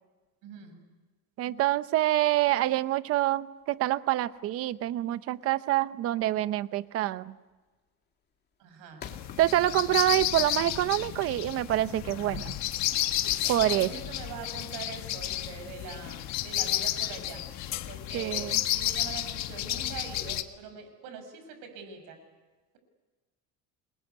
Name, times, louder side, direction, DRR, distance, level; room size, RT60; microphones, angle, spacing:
voice 1, 0.4-0.8 8.6-9.0 13.4-17.5 17.9-22.2, right 5 dB, 60° right, 7 dB, 6.9 m, -43 dB
voice 2, 1.4-7.3 9.4-12.5 13.5-13.9 18.1-18.6, right 15 dB, 40° right, 15 dB, 0.8 m, -26 dB
sound 1, 3.5-10.3, left 7 dB, 25° left, 2.6 m, -51 dB
sound 2, 9.0-20.4, left 13 dB, 45° left, 1.5 m, -32 dB
28.0 x 22.0 x 9.5 m, 1.3 s
cardioid pair, 175°, 37 cm